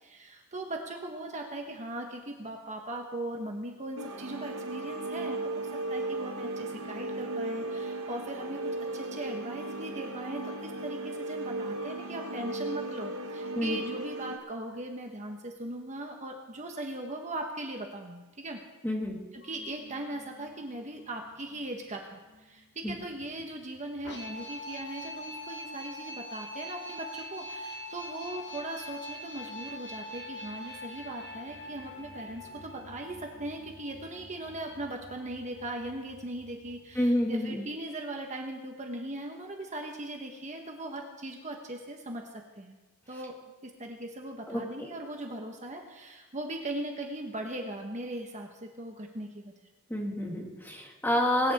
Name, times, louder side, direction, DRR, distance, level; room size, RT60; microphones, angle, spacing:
voice 1, 0.0-8.6 8.9-18.6 19.3-42.8 43.1-43.3 43.6-49.5, right 1 dB, 35° right, 2 dB, 1.3 m, -39 dB
sound 1, 3.9-14.4, right 2 dB, 65° right, 1.2 m, -36 dB
voice 2, 18.8-19.2 22.8-22.9 37.0-37.6 44.5-44.9 49.9-51.5, left 1 dB, 10° left, -1 dB, 2.1 m, -29 dB
sound 2, 19.4-37.2, left 1 dB, 50° left, 1.9 m, -44 dB
21.5 x 10.5 x 3.7 m, 1.2 s
head